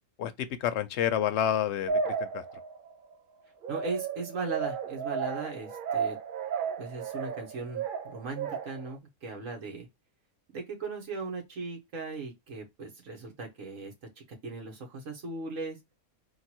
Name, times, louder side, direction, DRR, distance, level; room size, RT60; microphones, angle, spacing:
voice 1, 0.2-2.4, left 10 dB, 60° left, 0.8 m, -29 dB
sound 1, 1.9-2.9 3.6-8.9, right 6 dB, 50° right, 0.6 m, -33 dB
voice 2, 3.7-6.2 6.8-9.9 10.5-13.9 14.3-15.8, right 3 dB, 65° right, 1.7 m, -38 dB
4.0 x 2.6 x 4.4 m
omnidirectional pair, 1.5 m